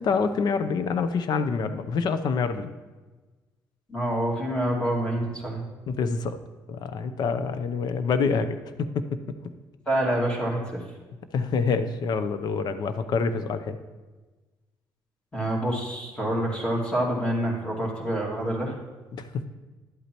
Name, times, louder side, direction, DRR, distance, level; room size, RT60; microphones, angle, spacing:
voice 1, 0.0-2.7 5.9-6.4 6.7-9.1 11.3-13.8 19.1-19.4, left 5 dB, 60° left, 11 dB, 0.6 m, -26 dB
voice 2, 3.9-5.7 9.9-10.8 15.3-18.8, right 1 dB, 15° left, -2 dB, 2.2 m, -27 dB
11.0 x 8.3 x 3.0 m, 1.2 s
cardioid pair, 110°, 8 cm